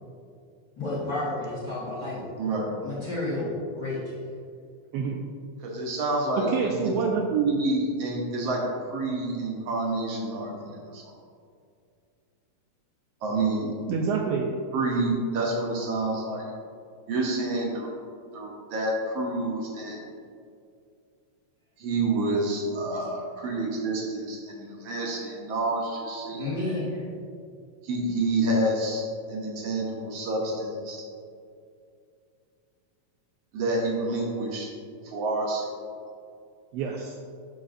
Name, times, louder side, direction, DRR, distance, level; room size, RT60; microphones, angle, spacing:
voice 1, 0.8-2.2 2.8-4.0 6.5-6.9 26.3-27.1, left 2 dB, 45° left, -8 dB, 1.6 m, -31 dB
voice 2, 2.4-2.8 5.6-6.5 7.0-11.0 13.2-13.8 14.7-16.5 17.1-17.9 18.3-20.0 21.8-26.8 27.8-31.0 33.5-34.7 35.0-35.7, right 2 dB, 65° right, -2 dB, 1.8 m, -28 dB
voice 3, 6.5-7.3 13.9-14.5 36.7-37.2, right 5 dB, 90° right, 1 dB, 1.4 m, -27 dB
12.0 x 5.1 x 2.5 m, 2.3 s
omnidirectional pair, 3.3 m